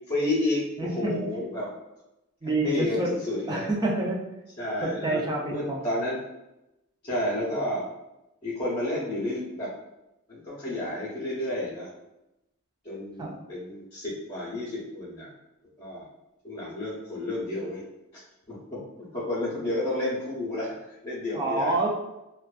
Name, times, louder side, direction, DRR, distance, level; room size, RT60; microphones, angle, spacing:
voice 1, 0.1-1.7 2.6-3.7 4.6-6.2 7.0-7.9 8.4-9.7 10.3-11.9 12.8-15.3 15.8-16.1 16.4-17.8 18.1-18.2 18.5-20.7 21.0-21.7, left 1 dB, 25° left, -10 dB, 0.7 m, -31 dB
voice 2, 0.8-1.1 2.4-3.1 3.5-4.2 4.8-5.8 13.2-13.3 21.3-21.9, right 2 dB, 20° right, -2 dB, 0.4 m, -27 dB
2.4 x 2.2 x 2.4 m, 0.92 s
head